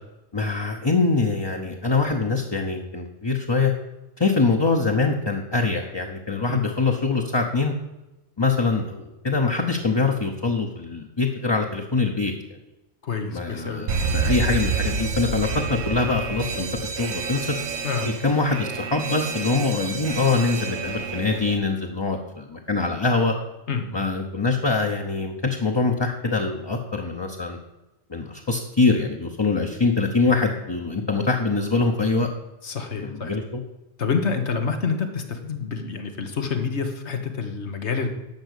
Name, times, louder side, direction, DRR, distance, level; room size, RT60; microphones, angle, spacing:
voice 1, 0.3-3.7 4.2-7.7 8.4-12.3 13.3-16.7 17.0-17.5 18.0-23.3 23.9-27.6 28.1-32.3 33.0-33.6, left 3 dB, 25° left, 1 dB, 0.8 m, -24 dB
voice 2, 13.0-13.9 17.8-18.1 23.7-23.9 32.6-33.3 34.0-38.1, left 5 dB, 85° left, 5 dB, 1.6 m, -27 dB
Alarm, 13.9-21.6, right 5 dB, 85° right, 1.2 m, -28 dB
10.5 x 6.1 x 8.2 m, 0.99 s
omnidirectional pair, 1.1 m